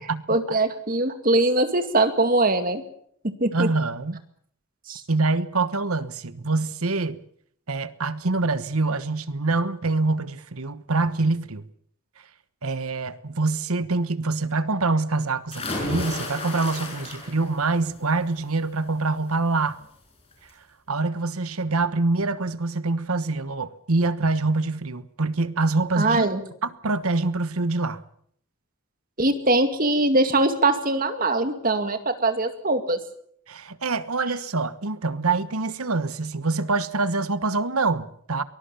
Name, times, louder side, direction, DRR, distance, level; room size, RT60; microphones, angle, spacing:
voice 1, 0.3-2.8 3.2-3.7 4.9-5.0 26.0-26.4 29.2-33.0, right 2 dB, 40° right, 2.2 m, -22 dB
voice 2, 3.5-4.2 5.1-7.2 7.7-11.6 12.6-19.8 20.9-26.3 26.6-28.0 33.5-38.4, right 3 dB, 80° right, 1.3 m, -25 dB
sound 1, 15.5-17.6 18.0-18.4 19.8-19.9 20.3-20.4, left 2 dB, 25° left, 6.4 m, -32 dB
23.5 x 20.0 x 7.0 m
head